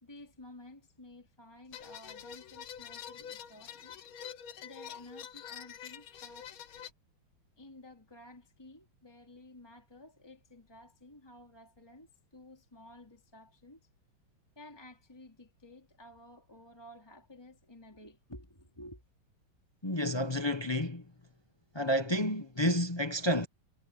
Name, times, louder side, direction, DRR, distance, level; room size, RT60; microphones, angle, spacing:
voice 1, 0.0-3.9 4.6-6.5 7.6-13.8 14.5-19.0, left 1 dB, 10° left, 3.0 m, -53 dB
sound 1, 1.7-6.9, left 8 dB, 70° left, 2.0 m, -46 dB
voice 2, 19.8-21.0 21.7-23.5, equal, 30° left, 0.4 m, -30 dB
omnidirectional pair, 2.3 m